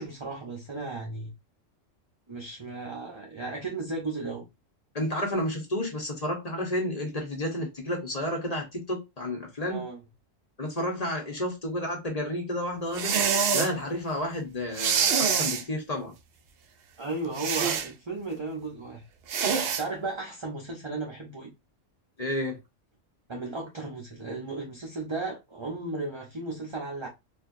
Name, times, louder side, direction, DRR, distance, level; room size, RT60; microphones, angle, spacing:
voice 1, 0.0-1.3 2.3-4.4 9.6-10.0 17.0-19.0 19.5-21.5 23.3-27.1, right 3 dB, 25° right, 0.7 m, -35 dB
voice 2, 4.9-9.8 10.6-13.2 13.5-16.1 22.2-22.6, left 1 dB, 30° left, 1.1 m, -31 dB
sound 1, 12.9-13.7 14.7-15.6 17.4-17.9 19.3-19.8, right 6 dB, 60° right, 0.7 m, -25 dB
4.4 x 2.6 x 2.6 m
omnidirectional pair, 1.3 m